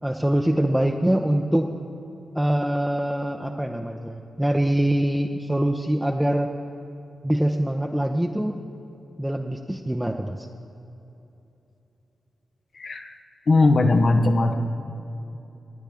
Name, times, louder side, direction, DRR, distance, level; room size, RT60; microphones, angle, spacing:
voice 1, 0.0-1.7 2.3-6.5 7.2-8.6 9.2-10.5, right 1 dB, 10° right, 1 dB, 0.8 m, -24 dB
voice 2, 12.7-13.1 13.5-14.5, left 2 dB, 60° left, 5 dB, 1.0 m, -19 dB
21.0 x 8.9 x 3.6 m, 2.9 s
supercardioid pair, 40°, 0 cm